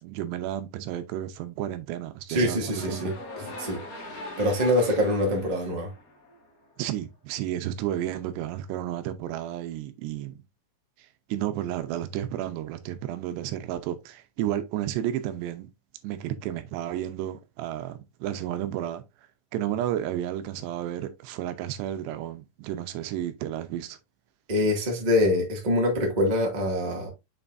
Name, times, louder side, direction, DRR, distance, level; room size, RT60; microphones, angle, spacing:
voice 1, 0.0-3.1 4.9-5.0 6.8-10.4 11.0-15.7 16.0-19.0 19.5-24.0, right 12 dB, 85° right, 3.0 m, -32 dB
voice 2, 2.3-3.1 3.6-3.8 4.4-5.9 24.5-27.1, left 1 dB, 20° right, 1.1 m, -24 dB
sound 1, 2.5-6.7, left 2 dB, 60° left, 0.9 m, -41 dB
7.1 x 5.7 x 2.6 m
omnidirectional pair, 4.9 m